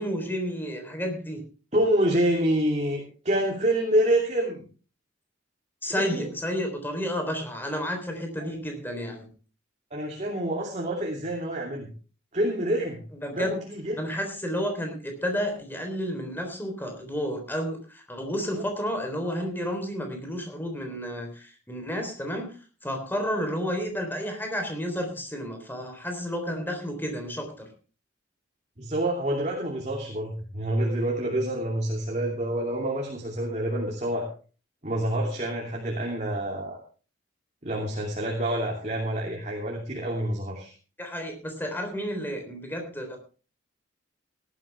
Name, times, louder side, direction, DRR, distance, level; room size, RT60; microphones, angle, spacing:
voice 1, 0.0-1.4 5.8-9.3 13.2-13.6 14.0-22.5 22.8-27.7 41.0-43.2, equal, 10° left, 4 dB, 3.6 m, -31 dB
voice 2, 1.7-4.6 5.9-6.3 8.4-8.5 9.9-11.9 12.3-13.0 13.3-14.0 18.5-18.6 28.8-34.3 34.8-36.8 37.6-40.7, right 1 dB, 40° right, -1 dB, 2.9 m, -27 dB
17.5 x 12.0 x 3.5 m, 0.37 s
head